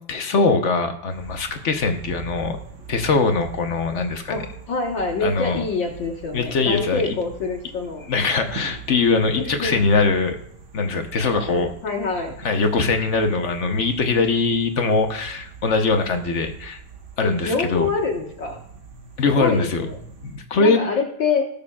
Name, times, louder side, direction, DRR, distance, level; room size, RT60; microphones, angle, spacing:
voice 1, 0.1-2.6 2.9-4.4 5.2-5.6 6.3-7.0 8.1-10.4 10.7-11.7 12.4-16.8 17.2-17.9 19.2-19.8 20.2-20.8, left 3 dB, 50° left, 6 dB, 0.9 m, -21 dB
sound 1, 1.1-20.4, right 6 dB, 85° right, 2.2 m, -42 dB
voice 2, 4.7-8.1 9.4-9.8 11.5-12.3 17.2-18.6 19.3-20.0 20.6-21.5, left 4 dB, 70° left, -2 dB, 2.1 m, -26 dB
19.0 x 6.8 x 2.3 m, 0.75 s
omnidirectional pair, 2.1 m